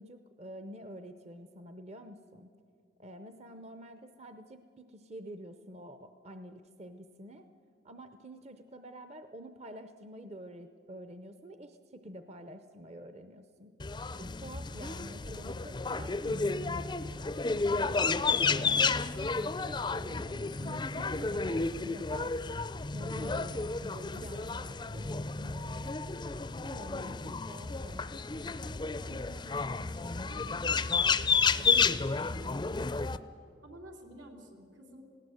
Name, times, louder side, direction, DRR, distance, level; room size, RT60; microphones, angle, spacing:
voice 1, 0.0-2.5 3.0-7.5 7.8-13.7 14.1-17.4 17.7-22.6 22.9-26.0 26.6-28.6, right 1 dB, 35° right, 9 dB, 0.7 m, -48 dB
sound 1, 13.8-33.2, left 4 dB, 25° left, 0.4 m, -31 dB
voice 2, 26.7-27.1 29.0-33.1 33.6-35.0, right 1 dB, 85° right, 3 dB, 3.2 m, -51 dB
19.5 x 17.0 x 7.8 m, 2.4 s
head